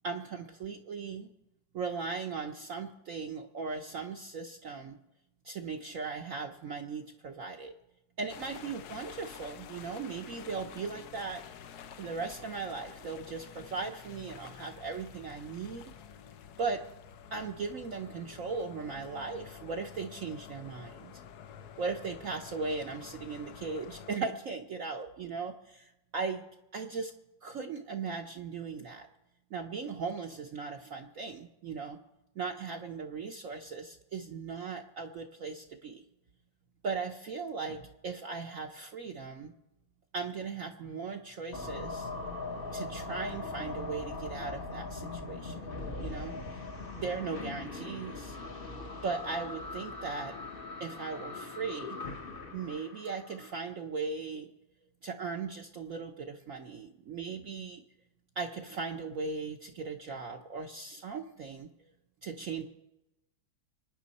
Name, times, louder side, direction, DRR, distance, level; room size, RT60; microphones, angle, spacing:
voice 1, 0.0-1.3 1.7-5.0 5.4-7.7 8.2-11.4 12.0-15.9 16.6-16.8 17.3-21.2 21.8-26.4 26.7-27.1 27.4-29.1 29.5-32.0 32.3-36.0 36.8-39.5 40.1-42.1 42.7-45.7 46.0-46.6 47.0-48.4 49.0-50.3 50.8-52.0 52.5-54.5 55.0-57.8 58.4-61.9 62.2-62.6, right 4 dB, 55° right, 3 dB, 1.0 m, -38 dB
sound 1, 8.3-24.2, left 8 dB, 65° left, 1.1 m, -49 dB
sound 2, 41.5-53.5, left 3 dB, 35° left, 1.0 m, -40 dB
25.0 x 9.8 x 4.1 m, 0.93 s
omnidirectional pair, 2.1 m